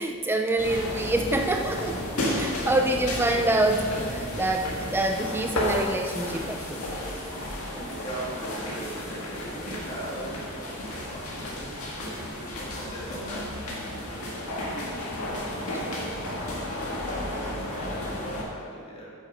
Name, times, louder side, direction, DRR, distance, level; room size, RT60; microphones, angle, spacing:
voice 1, 0.0-2.0 2.3-6.9 7.7-7.9 15.7-15.8, right 2 dB, 10° right, 4 dB, 0.4 m, -26 dB
sound 1, 0.6-18.4, left 1 dB, 80° left, 1.8 m, -33 dB
voice 2, 2.7-3.6 7.8-15.1 15.5-19.1, right 1 dB, 25° left, -5 dB, 2.1 m, -40 dB
8.7 x 6.5 x 5.2 m, 2.3 s
head